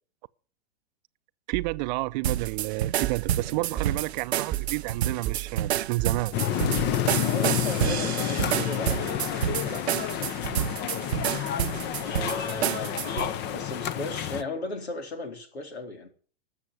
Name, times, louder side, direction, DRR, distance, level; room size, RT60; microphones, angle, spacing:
sound 1, 1.5-7.3, right 16 dB, 25° right, 1.0 m, -36 dB
voice 1, 1.5-6.3, right 22 dB, 45° right, 0.7 m, -30 dB
sound 2, 2.2-13.3, right 11 dB, 80° right, 0.6 m, -29 dB
voice 2, 3.4-3.9 7.2-10.8 12.0-16.1, left 2 dB, 85° left, 4.2 m, -37 dB
sound 3, 6.3-14.4, left 10 dB, 35° left, 1.0 m, -29 dB
13.5 x 7.4 x 9.8 m
hypercardioid pair, 115°, 32 cm